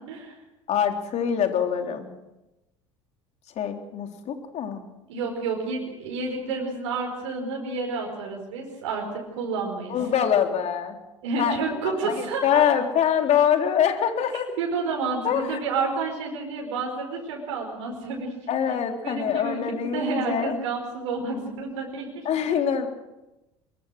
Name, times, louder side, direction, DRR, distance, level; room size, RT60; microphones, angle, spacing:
voice 1, 0.7-2.1 3.6-4.8 9.9-11.0 11.4-11.6 11.8-14.5 15.2-15.6 18.5-20.6 22.2-22.9, left 8 dB, 45° left, 4 dB, 3.7 m, -24 dB
voice 2, 5.1-10.2 11.2-12.7 14.6-18.3 19.0-22.3, right 4 dB, 70° right, 0 dB, 5.0 m, -30 dB
23.5 x 23.0 x 6.5 m, 0.99 s
hypercardioid pair, 70°, 15 cm